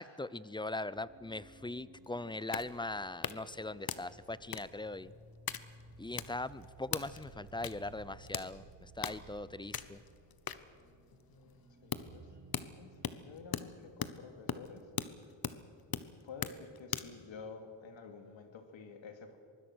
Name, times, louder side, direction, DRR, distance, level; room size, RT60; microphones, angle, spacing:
voice 1, 0.0-5.1 6.0-10.0, left 2 dB, 10° left, 17 dB, 0.5 m, -40 dB
sound 1, 0.9-13.2, right 3 dB, 60° right, 6.7 m, -58 dB
sound 2, 2.0-17.2, left 8 dB, 50° left, 1.0 m, -42 dB
voice 2, 11.3-12.3 12.8-14.9 16.2-19.4, left 4 dB, 70° left, 6 dB, 2.7 m, -50 dB
24.5 x 20.5 x 6.3 m, 2.4 s
wide cardioid pair, 120°, 47 cm